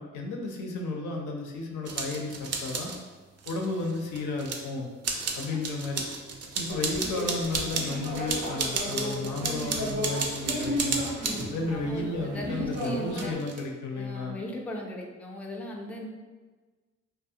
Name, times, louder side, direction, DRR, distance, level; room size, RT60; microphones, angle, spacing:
voice 1, 0.0-2.9 3.5-4.9 5.3-6.0 6.6-11.0 11.5-14.4, left 3 dB, 80° left, 0 dB, 0.5 m, -33 dB
sound 1, 1.9-3.0 3.4-4.6 5.0-11.5 12.7-13.6, right 4 dB, 55° right, 0.4 m, -33 dB
sound 2, 6.7-13.3, equal, 85° right, 0.8 m, -34 dB
voice 2, 11.4-13.4 13.9-16.1, equal, 5° left, -1 dB, 0.4 m, -38 dB
2.4 x 2.0 x 2.6 m, 1.3 s
cardioid pair, 55°, 30 cm